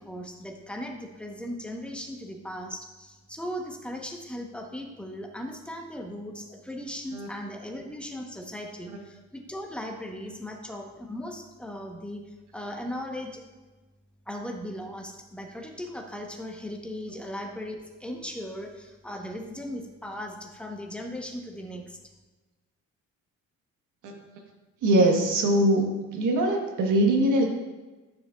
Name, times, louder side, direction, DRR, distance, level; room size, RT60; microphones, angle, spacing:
voice 1, 0.0-12.2 12.5-13.4 14.3-22.0, left 1 dB, 5° left, 2 dB, 1.0 m, -38 dB
voice 2, 24.8-25.8 26.1-27.4, right 1 dB, 85° right, 1 dB, 1.3 m, -22 dB
10.0 x 6.2 x 2.4 m, 1.2 s
cardioid pair, 90°, 30 cm